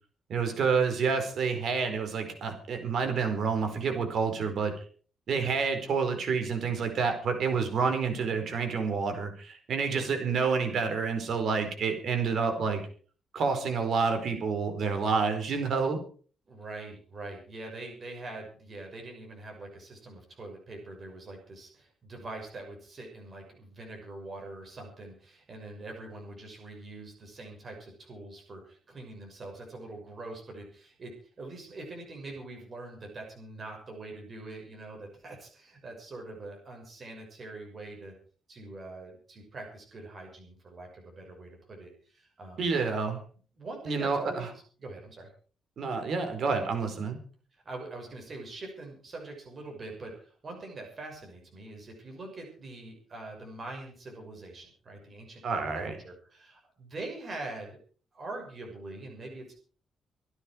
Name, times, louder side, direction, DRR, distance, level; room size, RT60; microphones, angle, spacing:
voice 1, 0.3-4.7 5.3-12.8 13.3-16.0 42.6-43.2 43.9-44.5 45.8-47.2 55.4-56.0, right 5 dB, 55° right, 6 dB, 4.5 m, -28 dB
voice 2, 16.5-38.1 38.5-42.7 43.6-44.5 44.8-45.3 47.6-57.8 58.1-59.6, right 2 dB, 30° right, 1 dB, 6.1 m, -43 dB
25.5 x 9.8 x 4.6 m, 0.41 s
wide cardioid pair, 165°, 0 cm